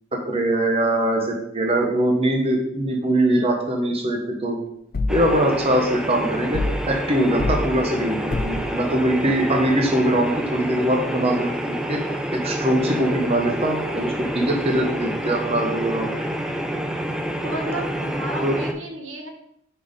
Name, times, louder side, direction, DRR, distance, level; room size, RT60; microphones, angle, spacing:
voice 1, 0.1-4.6 5.1-11.5 11.9-12.0 12.4-16.1 18.4-18.5, right 1 dB, 30° right, 2 dB, 0.9 m, -22 dB
sound 1, 4.9-5.3 6.5-6.9 7.4-7.6 8.3-8.6, left 2 dB, 50° left, 0.5 m, -24 dB
sound 2, 5.1-18.7, equal, 5° right, 0.4 m, -28 dB
voice 2, 17.4-19.3, right 1 dB, 85° right, 3 dB, 1.1 m, -32 dB
5.4 x 4.3 x 5.0 m, 0.74 s
head